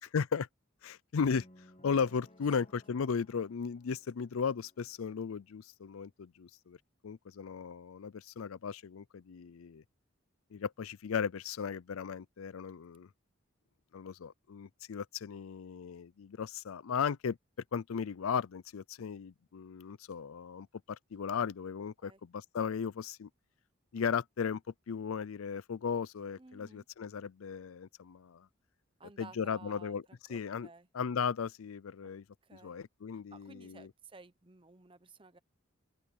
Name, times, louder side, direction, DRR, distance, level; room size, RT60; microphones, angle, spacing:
voice 1, 0.1-0.5 0.8-1.5 1.8-6.8 7.0-9.8 10.5-13.1 13.9-17.4 17.7-23.3 23.9-24.6 24.9-28.5 29.2-30.0 30.3-30.7 30.9-32.2 32.6-33.9, left 6 dB, 90° left, 0.5 m, -36 dB
sound 1, 1.2-5.4, left 1 dB, 30° left, 1.6 m, -61 dB
voice 2, 26.4-26.9 29.0-30.9 32.0-32.1 32.4-32.8 33.1-35.4, right 3 dB, 25° right, 0.9 m, -55 dB
open air
head